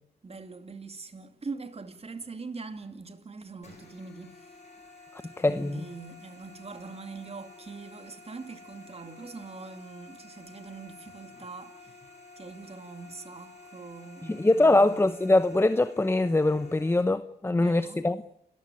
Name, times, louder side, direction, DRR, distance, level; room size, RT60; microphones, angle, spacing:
voice 1, 0.2-4.5 5.2-12.0 12.4-15.0 17.5-18.0, right 4 dB, 35° right, 2.5 m, -43 dB
sound 1, 3.6-17.0, left 3 dB, 40° left, 7.0 m, -51 dB
voice 2, 5.4-5.8 14.2-18.2, left 2 dB, 15° left, 0.9 m, -23 dB
29.5 x 15.0 x 9.0 m
cardioid pair, 70°, 17 cm